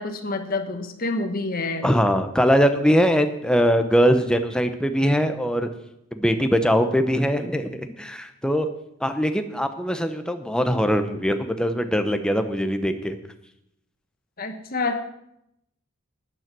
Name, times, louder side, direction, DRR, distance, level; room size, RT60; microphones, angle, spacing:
voice 1, 0.0-1.9 14.4-15.0, left 3 dB, 40° left, 7 dB, 1.3 m, -27 dB
voice 2, 1.8-5.7 6.1-8.7 9.0-13.2, equal, 5° left, 7 dB, 0.8 m, -21 dB
13.0 x 9.4 x 6.0 m, 0.78 s
head